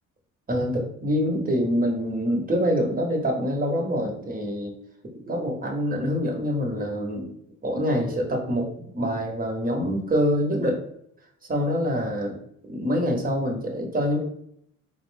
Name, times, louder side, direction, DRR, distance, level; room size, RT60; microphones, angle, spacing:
voice 1, 0.5-4.7 5.1-7.3 7.6-8.7 8.9-10.8 11.5-12.4 12.7-14.2, equal, 30° right, 0 dB, 1.1 m, -25 dB
4.0 x 2.1 x 3.3 m, 0.69 s
cardioid pair, 90°, 30 cm